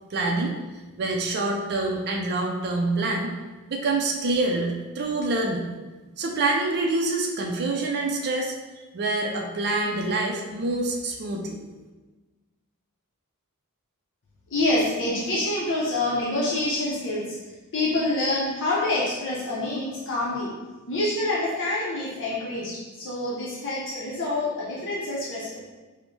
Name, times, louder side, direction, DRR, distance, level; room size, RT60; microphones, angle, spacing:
voice 1, 0.1-0.6 1.0-3.3 3.7-5.6 6.2-8.5 8.9-11.6, right 2 dB, 50° right, 0 dB, 0.4 m, -26 dB
voice 2, 14.5-17.2 17.7-20.5 20.9-25.6, left 2 dB, 55° left, -5 dB, 0.7 m, -26 dB
5.1 x 2.1 x 3.1 m, 1.2 s
head